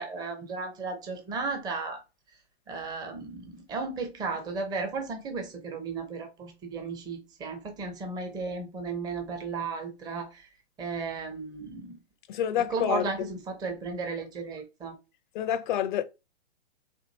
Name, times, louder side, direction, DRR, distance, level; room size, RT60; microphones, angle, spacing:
voice 1, 0.0-2.0 2.7-10.5 10.8-12.0 12.6-14.9, right 4 dB, 10° right, 0.6 m, -34 dB
voice 2, 12.3-13.1 15.3-16.0, left 10 dB, 45° left, 0.6 m, -27 dB
4.4 x 2.4 x 2.8 m
hypercardioid pair, 135°, 33 cm